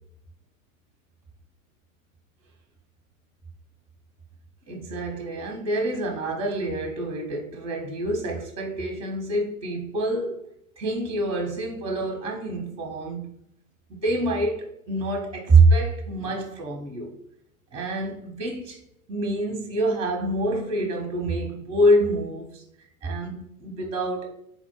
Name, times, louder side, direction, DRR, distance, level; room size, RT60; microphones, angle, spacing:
voice 1, 4.7-10.4 10.8-13.3 13.9-17.2 17.7-18.8 19.1-22.6 23.0-24.3, right 2 dB, 15° right, 2 dB, 0.7 m, -25 dB
4.0 x 2.1 x 4.4 m, 0.75 s
figure-of-eight pair, 100°, 43 cm